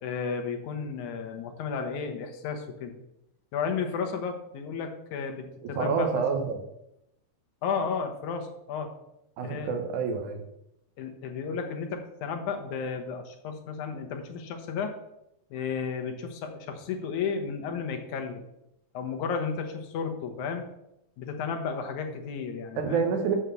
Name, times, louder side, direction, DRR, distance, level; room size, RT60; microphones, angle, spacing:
voice 1, 0.0-3.0 3.5-6.2 7.6-8.9 9.4-9.7 11.0-14.9 15.5-18.4 18.9-20.7 21.2-23.0, left 6 dB, 75° left, 5 dB, 2.5 m, -33 dB
voice 2, 5.6-6.6 9.4-10.4 22.8-23.4, right 5 dB, 75° right, 5 dB, 2.5 m, -28 dB
7.4 x 6.3 x 6.9 m, 0.84 s
omnidirectional pair, 3.4 m